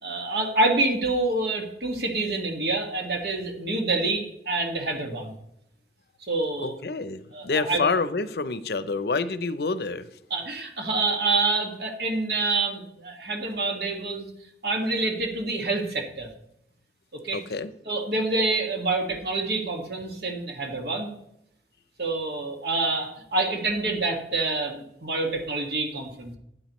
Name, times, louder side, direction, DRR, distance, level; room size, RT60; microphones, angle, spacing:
voice 1, 0.0-5.3 6.3-6.7 7.3-7.8 10.3-14.2 14.6-16.3 17.2-17.4 17.9-21.1 22.0-26.4, right 2 dB, 70° right, 2 dB, 1.8 m, -27 dB
voice 2, 6.6-10.1 17.3-17.7, left 4 dB, 65° left, 14 dB, 0.6 m, -28 dB
12.5 x 9.0 x 3.1 m, 0.77 s
head